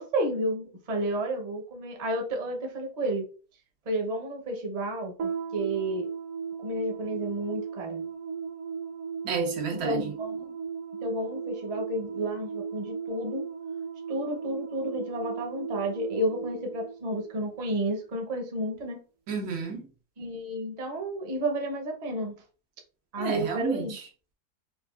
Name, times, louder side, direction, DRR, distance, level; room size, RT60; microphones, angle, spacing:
voice 1, 0.0-3.2 3.9-6.1 6.6-8.0 9.8-10.5 11.0-13.5 14.1-19.0 20.2-22.3 23.1-24.0, right 1 dB, 35° right, 0.7 m, -31 dB
sound 1, 5.2-17.7, right 6 dB, 65° right, 1.0 m, -36 dB
voice 2, 9.2-10.1 19.3-19.8 23.2-24.0, right 5 dB, 85° right, 1.4 m, -31 dB
4.5 x 2.4 x 2.3 m
omnidirectional pair, 1.6 m